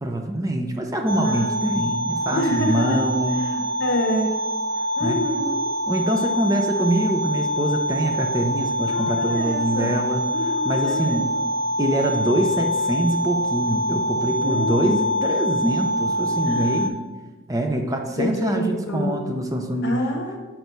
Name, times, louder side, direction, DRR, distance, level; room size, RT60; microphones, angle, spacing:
voice 1, 0.0-3.4 5.0-5.2 5.9-10.2 10.7-11.3 11.8-17.0 17.5-19.9, right 1 dB, 15° right, 3 dB, 0.6 m, -24 dB
sound 1, 1.1-16.9, equal, 65° right, 0.5 m, -25 dB
voice 2, 1.2-1.7 2.3-3.0 3.4-4.3 5.0-5.6 8.8-10.0 10.3-11.2 14.4-15.0 16.5-16.9 18.2-19.3 19.8-20.4, equal, 65° left, 2 dB, 1.1 m, -27 dB
6.3 x 4.5 x 5.3 m, 1.3 s
head